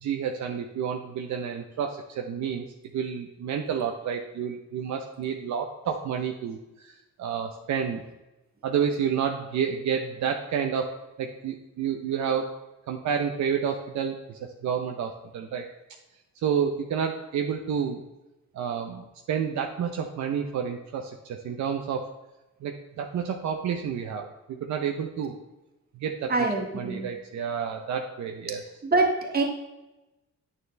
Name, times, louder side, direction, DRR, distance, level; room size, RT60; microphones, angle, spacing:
voice 1, 0.0-2.7 2.9-6.9 7.2-8.0 8.6-10.9 11.2-12.5 12.9-15.7 16.4-18.0 18.5-22.1 22.6-25.4 26.0-26.3 26.7-28.6, right 7 dB, 65° right, 3 dB, 0.8 m, -30 dB
voice 2, 26.3-27.1 28.8-29.4, right 3 dB, 30° right, 0 dB, 1.9 m, -24 dB
9.0 x 6.8 x 3.4 m, 1.0 s
cardioid pair, 90°, 30 cm